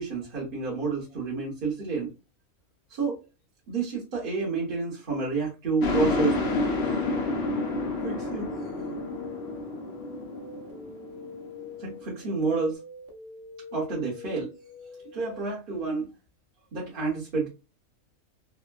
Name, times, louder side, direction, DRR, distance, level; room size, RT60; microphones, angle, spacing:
voice 1, 0.0-2.1 2.9-3.2 3.7-6.4 8.0-8.5 11.8-12.8 13.7-14.5 15.1-16.1 16.7-17.5, right 4 dB, 45° right, -4 dB, 1.0 m, -29 dB
sound 1, 5.8-12.5, left 2 dB, 60° left, 0.9 m, -29 dB
sound 2, 5.9-15.5, left 5 dB, 65° right, 1.2 m, -45 dB
3.4 x 2.1 x 2.2 m, 0.28 s
omnidirectional pair, 1.4 m